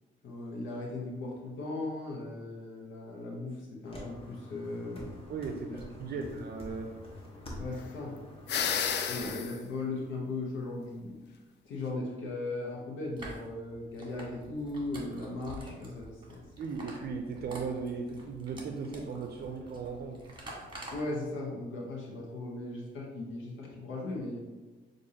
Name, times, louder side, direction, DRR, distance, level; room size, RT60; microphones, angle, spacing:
voice 1, 0.2-5.1 5.7-5.8 6.1-6.4 7.6-8.2 9.1-11.2 11.7-16.4 20.9-24.4, left 2 dB, 80° left, -2 dB, 0.9 m, -38 dB
sound 1, 3.8-9.3, left 1 dB, 30° left, 1.1 m, -47 dB
voice 2, 5.3-6.9 16.6-20.2, right 5 dB, 55° right, 3 dB, 0.5 m, -37 dB
sound 2, 8.5-9.6, left 7 dB, 60° left, 0.4 m, -31 dB
sound 3, 13.2-21.0, right 1 dB, 25° right, 1.3 m, -47 dB
6.2 x 2.6 x 2.8 m, 1.2 s
cardioid pair, 90°, 20 cm